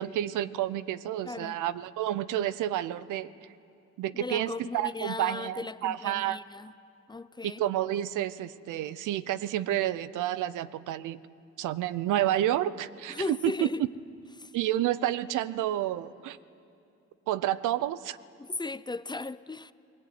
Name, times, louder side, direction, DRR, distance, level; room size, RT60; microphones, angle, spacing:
voice 1, 0.0-3.3 4.0-6.4 7.4-11.2 11.6-13.7 14.5-16.4 17.3-18.2, right 12 dB, 85° right, 0.7 m, -30 dB
voice 2, 1.2-1.6 4.1-6.7 7.1-7.6 13.1-13.9 14.4-14.5 18.4-19.7, left 3 dB, 15° left, 0.5 m, -37 dB
20.5 x 18.5 x 9.4 m
cardioid pair, 90°, 30 cm